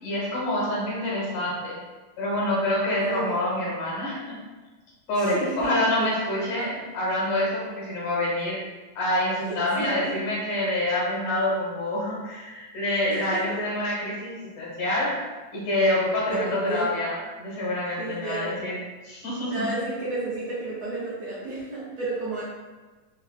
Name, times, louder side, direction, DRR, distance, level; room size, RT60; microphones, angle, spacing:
voice 1, 0.0-1.8 2.2-4.4 5.1-8.6 9.0-15.2 15.5-19.7, left 1 dB, 75° left, -6 dB, 2.5 m, -27 dB
voice 2, 3.0-3.4 5.2-6.7 9.4-10.2 13.1-13.6 16.3-16.9 18.0-18.5 19.5-22.4, right 2 dB, 75° right, -8 dB, 1.6 m, -32 dB
5.9 x 2.3 x 2.3 m, 1.3 s
omnidirectional pair, 3.6 m